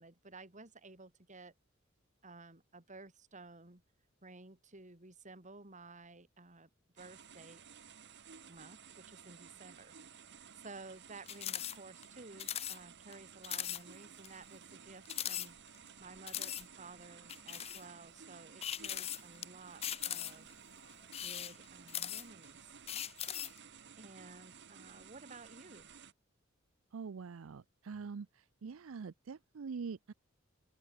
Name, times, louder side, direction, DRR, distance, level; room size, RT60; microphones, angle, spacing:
voice 1, 0.0-1.5 2.2-3.8 4.2-7.6 8.5-9.9 10.6-15.6 16.0-20.6 21.2-22.7 24.0-25.9, right 3 dB, 40° right, 3.3 m, -54 dB
sound 1, 7.0-26.1, right 7 dB, 60° right, 1.8 m, -55 dB
sound 2, 11.3-11.8 12.0-12.1 12.4-12.8 13.1-13.2 13.4-13.8 14.2-14.3 15.1-15.9 16.3-16.6 17.3-17.8 18.6-19.4 19.8-20.5 21.0-22.4 22.9-23.6, left 11 dB, 30° left, 0.5 m, -39 dB
voice 2, 26.9-28.3 28.6-30.1, right 5 dB, 75° right, 0.5 m, -44 dB
open air
head